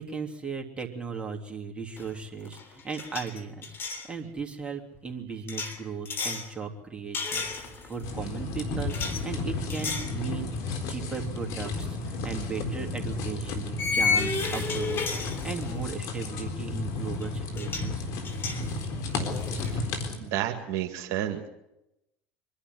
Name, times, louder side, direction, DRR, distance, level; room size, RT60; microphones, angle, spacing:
voice 1, 0.0-3.6 4.1-9.0 9.2-18.1, right 5 dB, 15° right, 1 dB, 3.4 m, -37 dB
sound 1, 2.0-2.2 2.4-4.1 5.5-6.5 7.1-8.0 8.9-9.2 9.7-10.2 10.6-10.8 12.3-12.4 13.8-15.9 17.2-17.3 17.5-17.9 18.2-19.7, left 4 dB, 40° left, 3.3 m, -32 dB
sound 2, 8.0-20.2, left 3 dB, 60° left, 3.9 m, -33 dB
voice 2, 20.2-21.5, right 11 dB, 60° right, 4 dB, 2.1 m, -30 dB
24.5 x 11.5 x 9.6 m, 0.87 s
hypercardioid pair, 80°, 6 cm